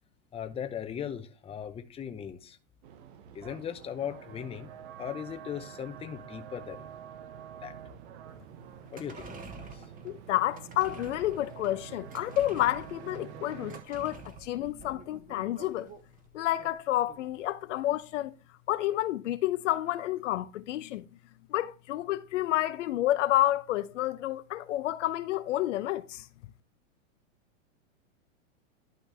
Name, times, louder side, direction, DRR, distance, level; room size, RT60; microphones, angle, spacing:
voice 1, 0.3-2.6 3.3-4.7 5.0-6.9 7.6-7.8 8.9-9.8, left 8 dB, 15° left, 0.8 m, -38 dB
sound 1, 2.8-13.8, right 9 dB, 55° right, 1.2 m, -47 dB
sound 2, 8.8-17.4 17.7-17.8, right 3 dB, 20° right, 1.3 m, -49 dB
voice 2, 10.0-15.9 16.3-18.3 18.7-21.1 21.5-26.3, left 14 dB, 65° left, 0.8 m, -30 dB
11.5 x 4.6 x 3.3 m
hypercardioid pair, 115°, 40 cm